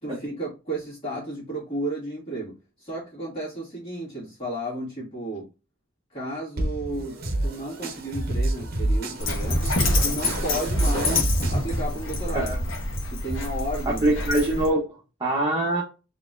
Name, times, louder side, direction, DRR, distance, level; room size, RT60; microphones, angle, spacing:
voice 1, 0.0-5.5 6.1-7.2 7.4-9.7 10.0-12.5 13.1-14.0, right 1 dB, 30° left, -6 dB, 2.1 m, -33 dB
sound 1, 6.6-12.5, right 1 dB, 50° right, 0.9 m, -28 dB
Dog, 9.2-14.7, left 2 dB, 70° left, 1.2 m, -27 dB
voice 2, 13.9-15.8, right 1 dB, 25° right, -3 dB, 0.9 m, -24 dB
4.1 x 3.0 x 2.5 m, 0.30 s
head